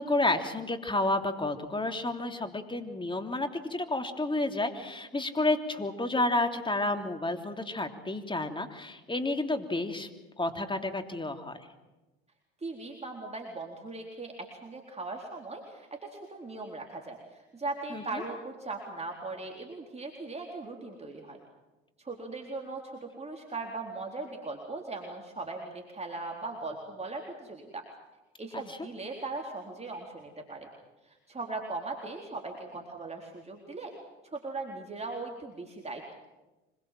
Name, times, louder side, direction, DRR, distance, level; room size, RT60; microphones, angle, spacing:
voice 1, 0.0-10.1 10.4-11.7 17.9-18.2 28.5-28.8, left 2 dB, 15° left, 6 dB, 3.1 m, -30 dB
voice 2, 12.6-14.3 14.6-21.4 22.0-27.8 28.4-30.7 31.0-33.9 34.3-36.1, right 3 dB, 20° right, 1 dB, 4.0 m, -39 dB
25.5 x 22.0 x 7.6 m, 1.1 s
hypercardioid pair, 70°, 31 cm